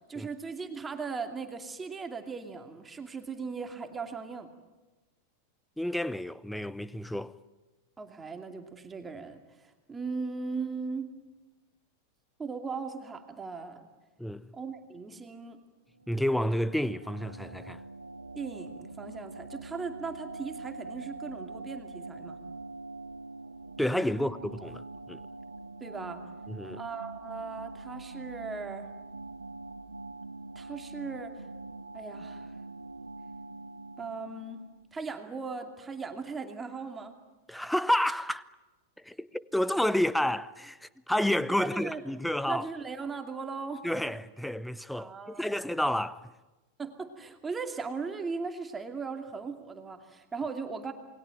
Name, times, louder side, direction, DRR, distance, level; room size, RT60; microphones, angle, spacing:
voice 1, 0.1-4.5 8.0-11.1 12.4-13.9 14.5-15.6 18.3-22.4 24.1-24.3 25.8-26.2 26.8-28.9 30.6-31.5 31.9-32.5 34.0-37.2 41.6-42.0 42.5-43.8 45.0-45.7 46.8-50.9, right 4 dB, 15° right, 2.6 m, -38 dB
voice 2, 5.8-7.3 14.2-14.5 16.1-17.8 23.8-25.2 26.5-26.8 37.5-38.4 39.0-42.7 43.8-46.3, left 1 dB, ahead, 0.8 m, -30 dB
sound 1, 15.9-34.9, right 3 dB, 80° right, 1.2 m, -44 dB
28.5 x 21.0 x 9.2 m
figure-of-eight pair, 90°, 0 cm